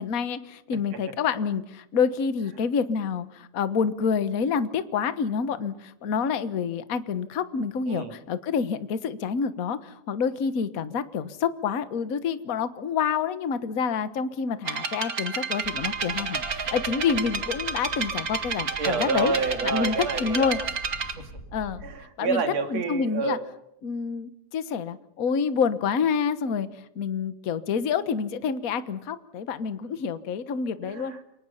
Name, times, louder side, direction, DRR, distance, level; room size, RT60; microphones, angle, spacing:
voice 1, 0.0-19.3 19.6-20.6 21.5-21.8 22.2-22.4 22.7-23.4 23.8-26.7 26.9-31.1, left 6 dB, 50° left, 12 dB, 1.0 m, -28 dB
sound 1, 14.7-21.1, right 5 dB, 35° right, 2.0 m, -31 dB
sound 2, 15.6-21.9, equal, 25° left, 6.9 m, -44 dB
voice 2, 18.8-20.6 21.8-23.4 30.8-31.3, right 4 dB, 60° right, 6 dB, 3.5 m, -28 dB
29.0 x 24.0 x 5.7 m, 0.81 s
omnidirectional pair, 3.3 m